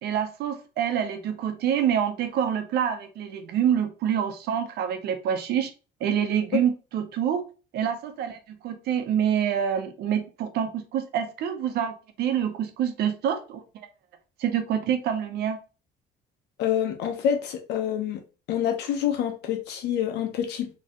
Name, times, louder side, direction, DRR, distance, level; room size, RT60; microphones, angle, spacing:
voice 1, 0.0-5.7 6.0-7.4 7.7-13.9 14.4-15.6, right 9 dB, 70° right, 0.9 m, -26 dB
voice 2, 16.6-18.2 18.5-20.8, left 9 dB, 80° left, 1.0 m, -27 dB
4.3 x 3.2 x 3.0 m
cardioid pair, 110°, 17 cm